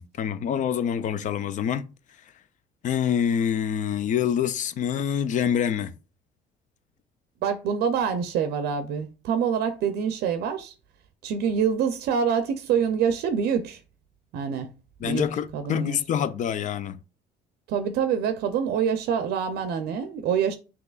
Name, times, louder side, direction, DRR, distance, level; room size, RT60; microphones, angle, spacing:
voice 1, 0.0-1.9 2.8-5.9 15.0-17.0, left 8 dB, 50° left, 0.4 m, -26 dB
voice 2, 7.4-10.7 11.2-13.8 14.3-14.7 15.0-15.2 15.5-16.0 17.7-20.5, right 7 dB, 75° right, 0.5 m, -26 dB
6.1 x 2.9 x 2.4 m
cardioid pair, 110°, 17 cm